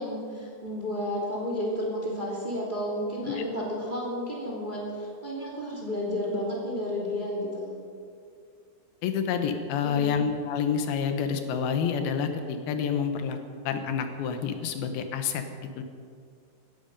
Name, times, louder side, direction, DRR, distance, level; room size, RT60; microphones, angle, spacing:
voice 1, 0.0-7.7 9.8-10.1, left 1 dB, 15° right, -3 dB, 2.5 m, -32 dB
voice 2, 9.0-13.4 13.7-15.4 15.8-15.9, left 7 dB, 85° left, 7 dB, 3.0 m, -28 dB
16.0 x 14.0 x 5.4 m, 2.2 s
omnidirectional pair, 4.3 m